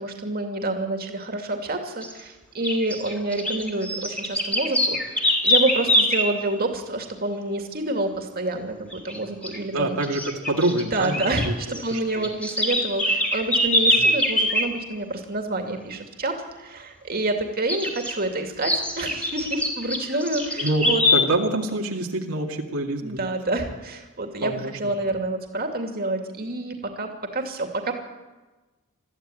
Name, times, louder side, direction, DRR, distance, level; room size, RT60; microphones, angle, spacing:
voice 1, 0.0-10.0 10.9-21.0 23.0-27.9, right 2 dB, 45° right, 4 dB, 2.6 m, -28 dB
sound 1, 2.0-2.2 2.6-6.3 8.9-9.2 9.4-9.6 10.0-11.5 11.7-14.7 17.7-18.1 18.6-21.2, left 1 dB, 5° left, 2.7 m, -23 dB
voice 2, 9.7-12.3 14.0-14.1 20.6-20.8 21.1-23.3 24.4-25.1, right 2 dB, 75° right, 0 dB, 2.3 m, -26 dB
22.0 x 14.5 x 8.9 m, 1.2 s
head